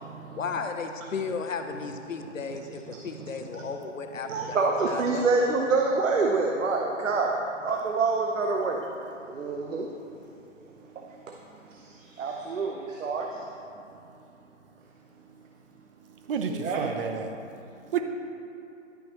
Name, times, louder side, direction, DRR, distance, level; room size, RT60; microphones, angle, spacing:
voice 1, 0.3-5.3, left 5 dB, 85° left, 6 dB, 0.8 m, -34 dB
voice 2, 4.3-8.9 9.2-9.9 11.7-13.4 16.5-16.9, right 3 dB, 80° right, 1 dB, 0.9 m, -27 dB
voice 3, 16.3-17.4 17.9-18.0, right 6 dB, 45° right, 5 dB, 0.8 m, -29 dB
11.5 x 5.7 x 3.0 m, 2.7 s
hypercardioid pair, 140°, 38 cm